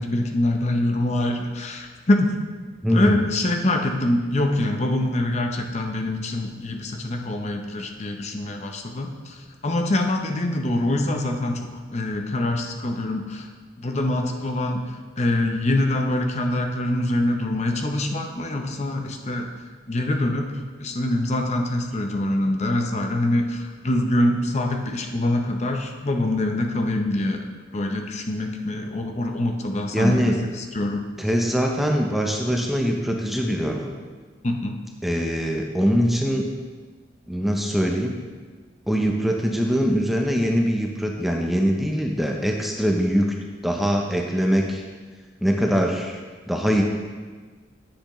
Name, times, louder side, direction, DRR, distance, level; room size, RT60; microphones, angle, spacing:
voice 1, 0.0-2.4 2.9-13.5 13.8-19.5 19.9-27.5 27.7-31.0 34.4-34.8, left 1 dB, 35° left, 4 dB, 0.7 m, -25 dB
voice 2, 2.8-3.2 29.9-30.4 31.2-33.9 35.0-36.5 37.3-38.1 38.9-43.3 43.6-44.8 45.4-46.2 46.5-46.8, equal, ahead, 1 dB, 0.6 m, -22 dB
10.5 x 7.9 x 3.1 m, 1.4 s
head